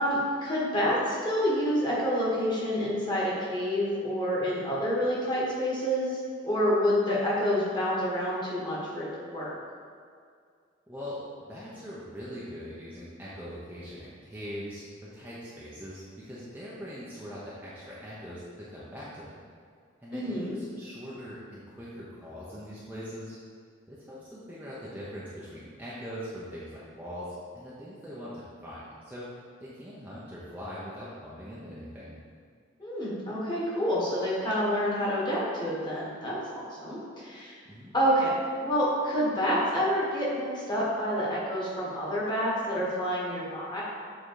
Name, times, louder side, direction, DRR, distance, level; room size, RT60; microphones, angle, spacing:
voice 1, 0.0-9.5 20.1-20.5 32.8-37.6 37.9-38.3 38.6-43.8, equal, 20° left, -6 dB, 1.6 m, -28 dB
voice 2, 10.9-11.2 11.5-19.4 20.0-23.4 23.9-32.2 37.6-37.9, equal, 10° right, -9 dB, 0.8 m, -42 dB
7.7 x 3.9 x 4.8 m, 2.2 s
head